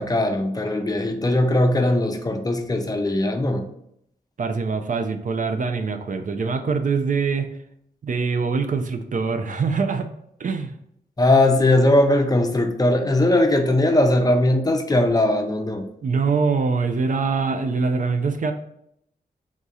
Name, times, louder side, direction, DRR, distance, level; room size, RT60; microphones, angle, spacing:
voice 1, 0.0-3.6 11.2-15.9, left 1 dB, 25° left, 5 dB, 0.6 m, -19 dB
voice 2, 4.4-7.5 8.0-10.1 10.4-10.7 16.0-18.5, right 4 dB, 50° right, 7 dB, 0.4 m, -23 dB
3.6 x 2.7 x 4.7 m, 0.73 s
wide cardioid pair, 75°, 16 cm